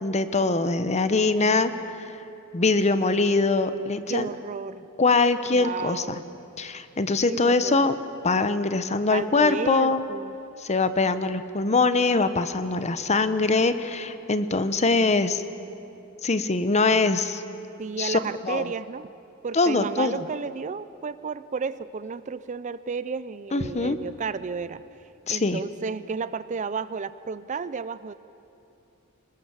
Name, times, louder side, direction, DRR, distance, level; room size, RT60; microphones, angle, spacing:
voice 1, 0.0-1.7 2.0-2.1 2.5-4.3 5.0-6.0 6.6-7.9 8.2-10.0 10.6-15.4 16.2-17.4 18.0-18.2 18.4-18.6 19.5-20.2 23.5-24.0 25.3-25.6, left 3 dB, 30° left, 12 dB, 0.9 m, -23 dB
voice 2, 4.1-4.9 5.5-6.3 7.3-7.9 9.1-10.3 17.8-19.1 19.4-24.8 25.3-28.1, right 5 dB, 35° right, 15 dB, 0.4 m, -32 dB
26.0 x 20.0 x 7.3 m, 2.8 s
head